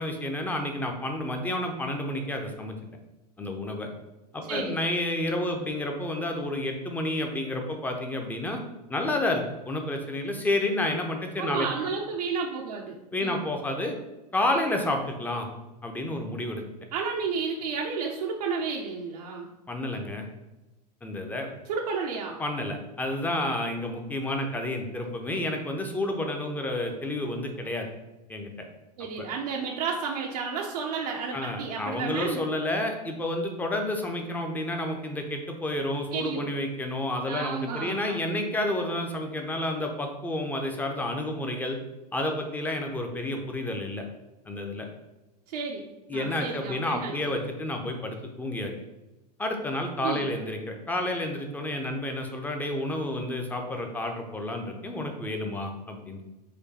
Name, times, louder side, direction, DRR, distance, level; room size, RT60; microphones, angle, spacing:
voice 1, 0.0-2.8 3.4-3.9 4.3-8.6 8.9-11.7 13.1-13.9 14.3-15.5 15.8-16.6 19.7-20.3 21.0-21.5 22.4-27.9 28.3-28.7 29.2-29.3 31.3-41.8 42.1-44.0 44.5-44.9 46.1-48.7 49.4-56.2, left 1 dB, 10° left, 3 dB, 0.6 m, -30 dB
voice 2, 11.4-13.4 16.9-19.5 21.7-22.4 29.0-32.4 36.1-36.5 37.3-38.2 45.5-47.1 50.0-50.3, right 5 dB, 65° right, -1 dB, 0.6 m, -32 dB
5.0 x 2.2 x 4.1 m, 1.0 s
hypercardioid pair, 105°, 21 cm